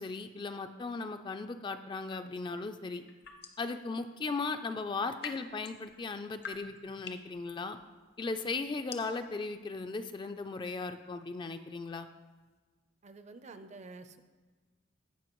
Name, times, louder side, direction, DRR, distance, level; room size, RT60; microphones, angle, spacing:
voice 1, 0.0-3.0 3.6-7.8 8.2-12.1, left 3 dB, 25° left, 8 dB, 0.3 m, -37 dB
sound 1, 2.9-3.7 4.8-12.5, left 5 dB, 55° left, 0.7 m, -50 dB
voice 2, 13.0-14.2, right 3 dB, 35° right, 10 dB, 0.5 m, -49 dB
15.5 x 5.6 x 3.0 m, 1.3 s
head